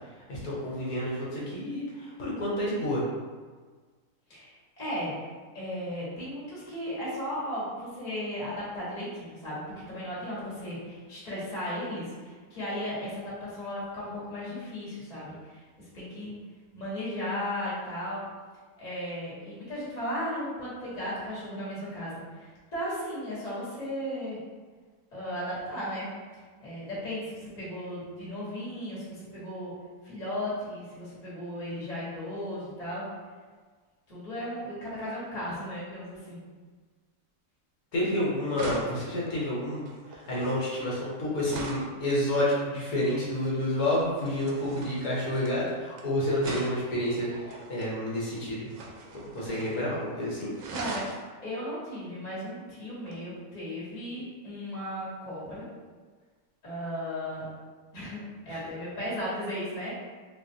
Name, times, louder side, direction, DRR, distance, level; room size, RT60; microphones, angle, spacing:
voice 1, 0.3-3.0 37.9-48.7 49.1-50.5 58.5-58.6, left 1 dB, 75° left, -6 dB, 1.3 m, -29 dB
voice 2, 4.3-5.3 5.5-9.6 9.9-16.3 16.7-18.2 18.8-24.4 25.1-26.1 26.3-29.7 30.0-33.1 34.1-36.4 50.7-51.1 51.4-55.7 56.6-57.5 57.9-58.2 58.4-59.9, equal, 30° left, -8 dB, 1.2 m, -36 dB
sound 1, 37.9-38.1 38.5-42.0 43.9-46.0 46.4-47.9 48.6-49.8 50.1-50.2 50.5-51.2 53.1-53.2, right 2 dB, 80° right, 1.0 m, -41 dB
3.7 x 2.3 x 2.6 m, 1.5 s
omnidirectional pair, 1.6 m